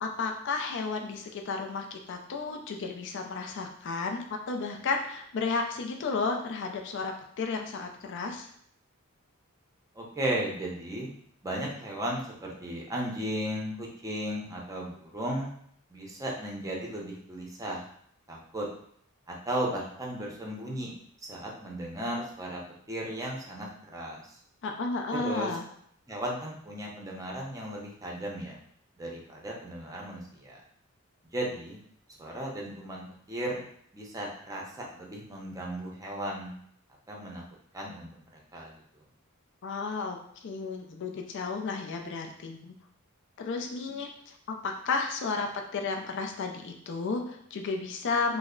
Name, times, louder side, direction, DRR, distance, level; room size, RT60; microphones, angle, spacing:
voice 1, 0.0-8.5 24.6-25.6 39.6-40.2 40.4-42.7 43.4-44.3 44.6-48.4, left 4 dB, 55° left, 3 dB, 0.4 m, -33 dB
voice 2, 9.9-11.1 11.4-15.5 15.9-17.8 18.3-18.7 19.3-20.9 21.3-22.6 22.9-24.4 25.1-25.5 26.1-28.6 29.0-30.6 31.3-31.8 32.2-33.6 33.9-36.5 37.1-37.4 37.7-38.1 38.5-38.7, right 1 dB, 15° right, -1 dB, 0.6 m, -35 dB
3.2 x 2.0 x 3.7 m, 0.66 s
head